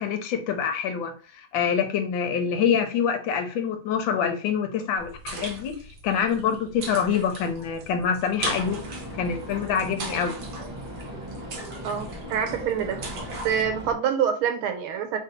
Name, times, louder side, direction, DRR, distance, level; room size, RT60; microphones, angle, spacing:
voice 1, 0.0-5.7 6.0-8.8 9.2-10.3, left 7 dB, 75° left, 6 dB, 1.3 m, -26 dB
sound 1, 5.0-13.6, right 3 dB, 60° right, 1.4 m, -39 dB
sound 2, 8.4-13.9, equal, 35° right, 0.7 m, -38 dB
voice 2, 11.8-13.0 13.4-15.2, right 8 dB, 85° right, 7 dB, 1.5 m, -26 dB
3.5 x 2.6 x 4.0 m, 0.38 s
omnidirectional pair, 2.2 m